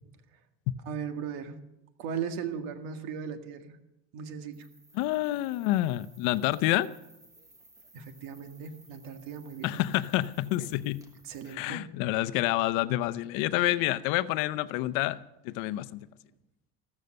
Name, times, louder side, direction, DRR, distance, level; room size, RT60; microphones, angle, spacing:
voice 1, 0.8-1.5 2.0-3.8 4.1-4.7 7.9-9.8 10.6-10.7 11.2-11.8 13.6-13.8, right 7 dB, 85° right, 2.0 m, -37 dB
sound 1, 4.5-11.5, right 2 dB, 10° right, 1.3 m, -58 dB
voice 2, 4.9-6.9 9.6-11.0 11.5-15.2 15.4-16.0, left 16 dB, 80° left, 0.8 m, -28 dB
15.0 x 14.0 x 6.6 m
cardioid pair, 175°, 32 cm